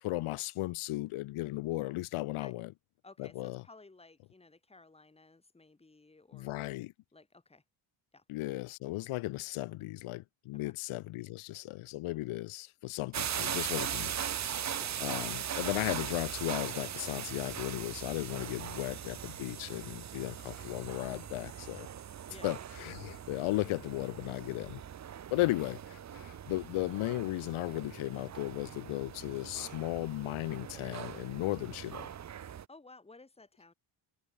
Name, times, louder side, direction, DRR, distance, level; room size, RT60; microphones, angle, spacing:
voice 1, 0.0-2.7 3.2-3.6 6.3-6.9 8.3-21.9 22.4-24.8 25.3-25.8 26.1-32.1, left 18 dB, 85° left, 0.7 m, -36 dB
voice 2, 3.0-6.6 7.1-7.6 8.1-8.2 10.5-10.7 14.7-15.0 22.2-22.6 25.3-25.5 32.7-33.7, left 3 dB, 10° left, 1.5 m, -56 dB
sound 1, 13.1-32.6, right 9 dB, 35° right, 0.7 m, -40 dB
cardioid pair, 140°, 49 cm